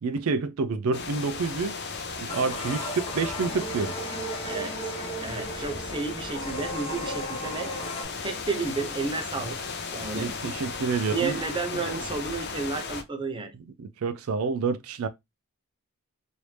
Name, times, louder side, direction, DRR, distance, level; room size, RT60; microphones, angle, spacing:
voice 1, 0.0-1.8 2.2-3.9 10.1-11.4 11.7-12.0 13.8-15.1, right 4 dB, 70° right, 0.4 m, -28 dB
sound 1, 0.9-13.0, left 4 dB, 50° left, 0.6 m, -36 dB
sound 2, 2.3-8.0, equal, 25° left, 0.9 m, -36 dB
voice 2, 4.4-4.9 5.2-7.7 8.2-9.6 9.9-10.3 11.1-13.5, right 4 dB, 20° right, 0.6 m, -32 dB
3.1 x 2.6 x 3.2 m
head